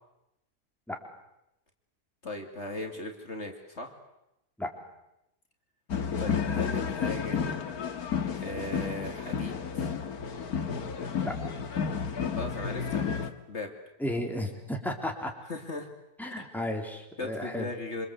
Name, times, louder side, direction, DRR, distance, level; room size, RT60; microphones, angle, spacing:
voice 1, 2.2-3.9 6.2-7.6 8.3-9.9 12.3-13.7 15.4-15.9 16.4-16.5 17.2-18.1, left 2 dB, 45° left, 3 dB, 3.0 m, -38 dB
sound 1, 5.9-13.3, left 6 dB, 70° left, 2.1 m, -31 dB
voice 2, 14.0-15.3 16.2-17.7, left 1 dB, ahead, 2 dB, 3.6 m, -33 dB
27.5 x 26.0 x 8.3 m, 0.88 s
omnidirectional pair, 1.7 m